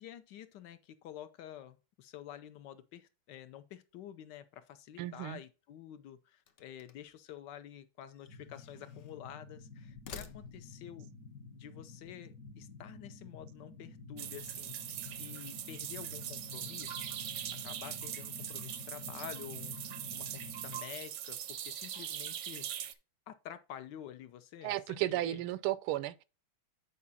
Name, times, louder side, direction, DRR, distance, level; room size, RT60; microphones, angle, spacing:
voice 1, 0.0-11.1 11.5-14.8 15.2-17.2 17.6-23.0 23.3-25.4, left 11 dB, 70° left, 1.1 m, -49 dB
voice 2, 5.0-5.4 24.6-26.2, right 15 dB, 85° right, 1.5 m, -34 dB
sound 1, 6.4-7.2 8.1-9.2 9.8-10.9, left 6 dB, 85° left, 0.6 m, -51 dB
sound 2, 8.3-20.8, left 3 dB, 50° left, 1.3 m, -50 dB
sound 3, 14.2-22.9, right 11 dB, 70° right, 1.1 m, -41 dB
8.6 x 4.8 x 4.0 m
omnidirectional pair, 2.3 m